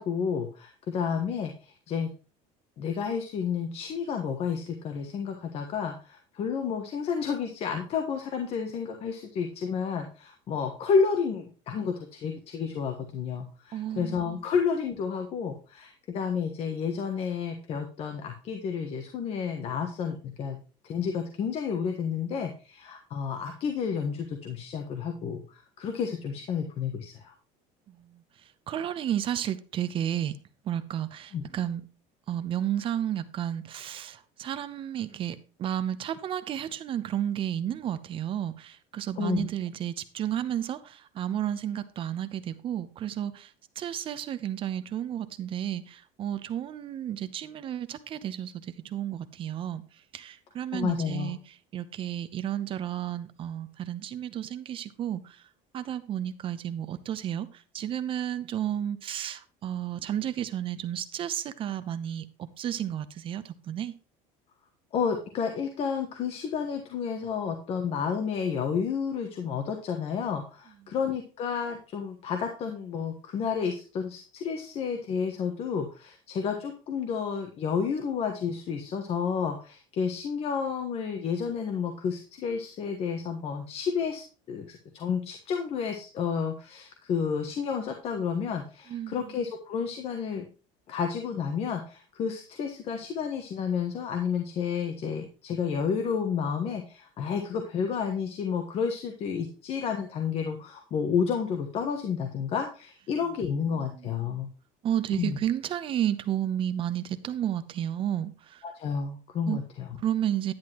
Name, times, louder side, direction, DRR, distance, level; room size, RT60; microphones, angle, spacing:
voice 1, 0.0-2.1 2.8-20.6 20.8-27.3 31.3-31.4 39.2-39.5 50.7-51.3 64.9-90.4 90.9-104.5 105.1-105.4 108.7-109.9, left 6 dB, 40° left, 1.3 m, -31 dB
voice 2, 13.7-14.4 27.9-28.2 28.7-30.4 30.6-31.8 32.3-49.8 50.1-55.4 55.7-63.9 70.8-70.9 88.9-89.3 103.9-104.4 104.8-108.6 109.4-109.6 110.0-110.5, right 10 dB, 35° right, 0.7 m, -32 dB
10.5 x 9.6 x 3.0 m
cardioid pair, 160°, 16 cm